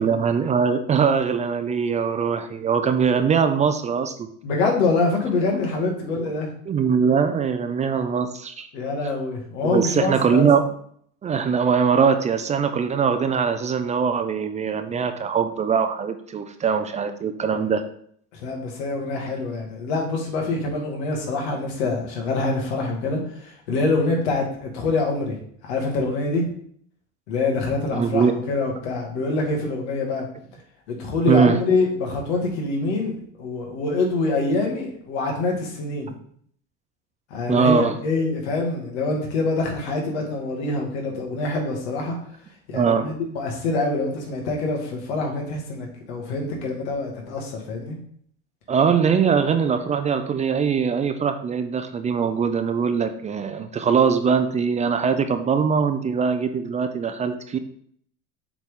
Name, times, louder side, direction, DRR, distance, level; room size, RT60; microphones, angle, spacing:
voice 1, 0.0-4.3 6.7-8.7 9.6-10.6 11.2-17.8 27.9-28.3 31.3-31.6 37.5-38.0 42.7-43.1 48.7-57.6, right 6 dB, 20° right, 9 dB, 0.4 m, -21 dB
voice 2, 4.4-6.5 8.7-10.5 18.3-25.4 25.6-26.5 27.3-30.3 30.9-36.1 37.3-42.2 42.7-48.0, left 3 dB, 90° left, 1 dB, 2.1 m, -25 dB
7.3 x 4.0 x 3.7 m, 0.63 s
supercardioid pair, 130°, 33 cm